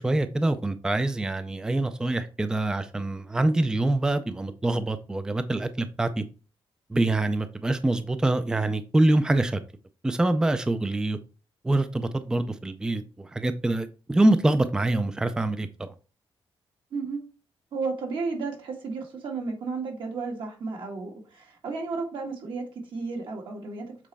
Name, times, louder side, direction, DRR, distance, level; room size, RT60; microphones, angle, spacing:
voice 1, 0.0-6.2 6.9-9.6 10.0-11.2 11.6-15.9, right 2 dB, 10° right, 0.4 m, -25 dB
voice 2, 16.9-17.2 17.7-22.6 22.9-23.9, right 4 dB, 65° right, 1.8 m, -33 dB
7.4 x 4.2 x 3.4 m
wide cardioid pair, 175°, 9 cm